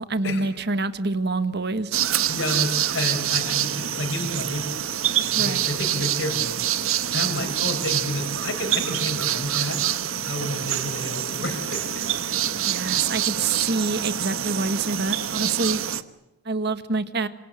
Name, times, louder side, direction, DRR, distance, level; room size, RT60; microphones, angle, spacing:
voice 1, 0.0-2.0 5.3-5.6 12.4-15.8 16.4-17.3, right 3 dB, 50° right, 11 dB, 1.5 m, -26 dB
sound 1, 1.9-16.0, right 10 dB, 70° right, 1.2 m, -26 dB
voice 2, 2.3-4.8 5.4-6.6 7.1-9.8 10.2-12.2, left 1 dB, 55° left, 3 dB, 4.9 m, -30 dB
26.5 x 26.5 x 7.9 m, 0.99 s
head